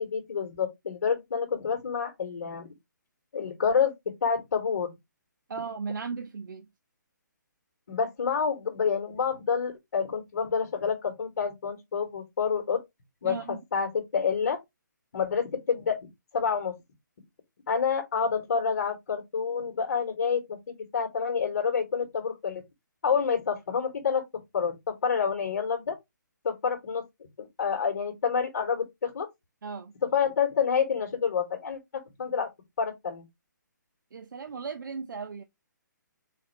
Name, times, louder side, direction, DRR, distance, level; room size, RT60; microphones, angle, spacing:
voice 1, 0.0-2.7 3.3-3.9 4.2-4.9 7.9-12.8 13.2-14.6 15.1-16.0 16.3-16.7 17.7-22.6 23.0-24.2 24.5-26.0 26.4-27.0 27.4-29.3 30.0-31.8 32.2-32.5 32.8-33.2, left 6 dB, 60° left, 1.4 m, -28 dB
voice 2, 5.5-6.7 13.2-13.6 29.6-29.9 34.1-35.4, right 5 dB, 75° right, 0.6 m, -36 dB
4.2 x 2.6 x 4.0 m
hypercardioid pair, 165°, 11 cm